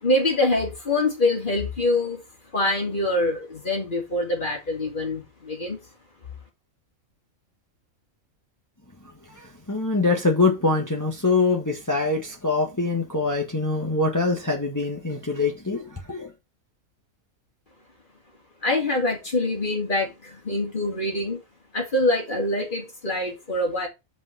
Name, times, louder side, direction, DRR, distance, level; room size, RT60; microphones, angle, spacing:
voice 1, 0.0-2.2 2.5-5.8 18.6-21.4 21.7-23.9, left 2 dB, 35° left, 2.9 m, -25 dB
voice 2, 9.3-16.3, left 3 dB, 15° left, 1.5 m, -24 dB
5.9 x 5.4 x 6.7 m
omnidirectional pair, 1.4 m